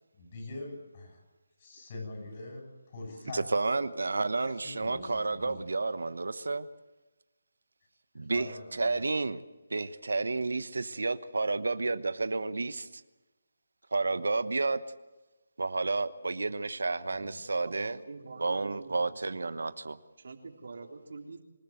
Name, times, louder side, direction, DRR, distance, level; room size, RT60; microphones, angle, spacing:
voice 1, 0.1-1.2 1.6-3.4 4.4-5.6 8.3-9.0 17.1-17.4, left 2 dB, 30° left, 2 dB, 7.8 m, -44 dB
voice 2, 3.3-6.7 8.1-9.4 9.7-13.0 13.9-14.8 15.6-18.0 18.4-20.0, right 3 dB, 90° right, 13 dB, 1.1 m, -31 dB
voice 3, 17.7-19.5 20.2-21.4, right 4 dB, 65° right, 2 dB, 3.5 m, -46 dB
26.0 x 16.0 x 8.0 m, 1.1 s
hypercardioid pair, 170°, 0 cm